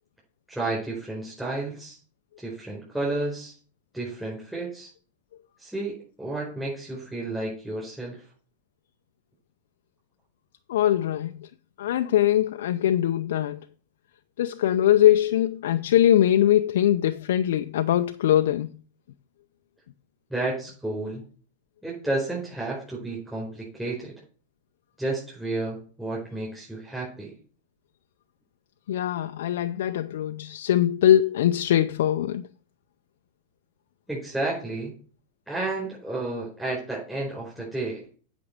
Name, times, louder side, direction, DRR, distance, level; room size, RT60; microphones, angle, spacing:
voice 1, 0.5-2.0 2.4-3.5 3.9-4.9 5.6-8.2 20.3-21.2 21.8-24.1 25.0-27.3 34.1-34.9 35.5-38.0, right 2 dB, 5° right, 4.5 m, -31 dB
voice 2, 10.7-11.5 11.8-13.6 14.4-18.7 28.9-32.5, left 11 dB, 70° left, 0.5 m, -22 dB
8.6 x 5.3 x 6.6 m
hypercardioid pair, 105°, 0 cm